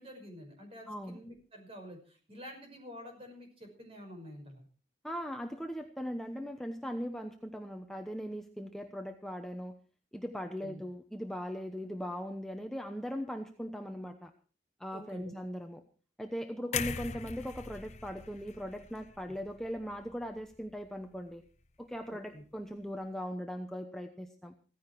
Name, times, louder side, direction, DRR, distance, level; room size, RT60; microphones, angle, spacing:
voice 1, 0.0-4.7 10.4-10.8 14.9-15.3 19.3-19.4 22.1-22.4, equal, 30° right, 3 dB, 5.7 m, -49 dB
voice 2, 0.9-1.2 5.0-9.7 10.1-14.3 14.8-15.8 16.2-21.4 21.8-24.5, equal, 5° left, 4 dB, 0.9 m, -39 dB
sound 1, 16.7-20.7 21.1-21.3, left 6 dB, 40° left, 0.9 m, -41 dB
16.0 x 15.0 x 4.6 m, 0.38 s
head